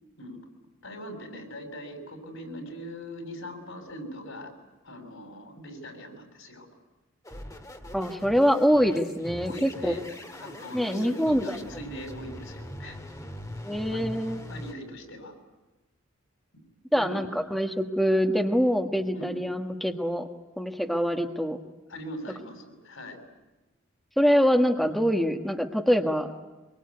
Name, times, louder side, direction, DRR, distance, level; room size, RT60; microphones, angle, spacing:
voice 1, 0.8-4.5 4.8-6.7 9.4-10.1 10.4-13.0 13.9-14.0 14.5-15.3 16.9-17.2 19.1-19.3 21.9-23.2, equal, 85° left, 5 dB, 6.6 m, -41 dB
sound 1, 7.2-14.7, left 1 dB, 15° left, 2.1 m, -42 dB
voice 2, 7.9-9.9 10.7-11.6 13.6-14.4 16.9-20.3 20.6-21.6 24.2-26.3, equal, ahead, 3 dB, 1.4 m, -24 dB
24.0 x 23.5 x 9.6 m, 1.1 s
head